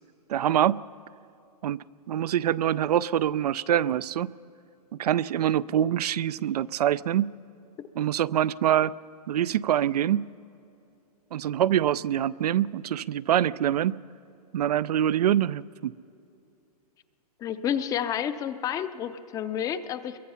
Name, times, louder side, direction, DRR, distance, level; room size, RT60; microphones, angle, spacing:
voice 1, 0.3-0.8 1.6-4.3 5.0-7.3 8.0-8.9 9.3-10.3 11.3-14.0 14.5-15.9, right 11 dB, 75° right, 19 dB, 0.5 m, -25 dB
voice 2, 17.4-20.2, left 9 dB, 15° left, 12 dB, 0.6 m, -30 dB
26.0 x 22.5 x 5.6 m, 2.6 s
hypercardioid pair, 145°, 20 cm